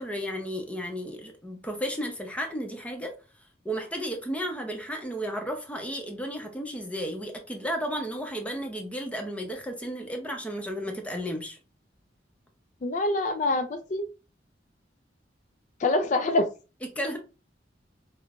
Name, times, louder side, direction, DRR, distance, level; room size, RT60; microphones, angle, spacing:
voice 1, 0.0-3.1 3.6-11.6 17.0-17.2, equal, 5° left, 0.6 m, -33 dB
voice 2, 12.8-14.1 15.8-16.4, left 2 dB, 45° left, 0.4 m, -25 dB
5.1 x 2.1 x 2.4 m
head